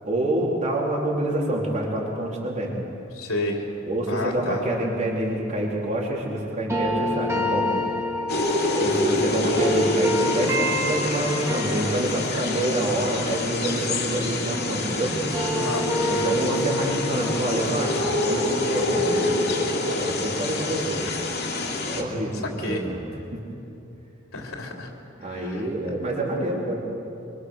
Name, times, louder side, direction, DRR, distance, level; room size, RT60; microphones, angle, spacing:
voice 1, 0.0-2.7 3.9-7.7 8.7-15.2 16.1-21.0 21.9-23.1 23.3-23.4 25.2-26.8, right 1 dB, 35° right, -3 dB, 4.3 m, -27 dB
voice 2, 3.1-3.6 4.1-4.6 15.5-16.3 21.9-22.8 24.3-24.9 25.3-25.6, left 2 dB, 85° left, 0 dB, 3.3 m, -31 dB
sound 1, 6.7-14.8 15.1-20.0, equal, 15° right, 2.2 m, -29 dB
sound 2, 8.3-22.0, left 2 dB, 50° left, 2.7 m, -27 dB
25.5 x 24.5 x 6.6 m, 2.8 s
head